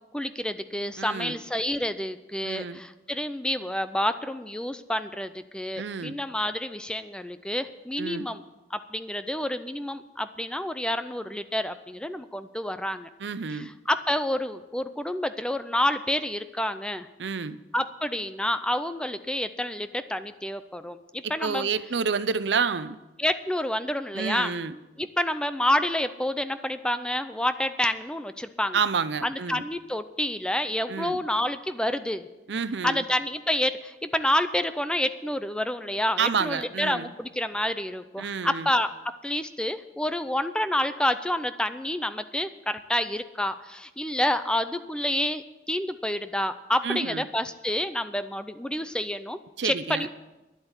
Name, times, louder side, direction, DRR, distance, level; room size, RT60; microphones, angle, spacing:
voice 1, 0.1-8.4 8.7-13.1 13.6-17.1 17.7-21.7 23.2-24.5 25.0-28.8 29.2-32.3 32.8-38.9 39.2-50.1, left 1 dB, 5° left, 11 dB, 0.5 m, -28 dB
voice 2, 1.0-1.4 2.4-2.8 5.8-6.2 8.0-8.3 13.2-13.7 17.2-17.6 21.2-23.0 24.1-24.7 28.7-29.6 30.9-31.2 32.5-33.0 36.2-37.1 38.2-38.7 46.8-47.3 49.6-50.1, right 5 dB, 80° right, 14 dB, 0.6 m, -29 dB
11.0 x 8.1 x 8.9 m, 1.0 s
head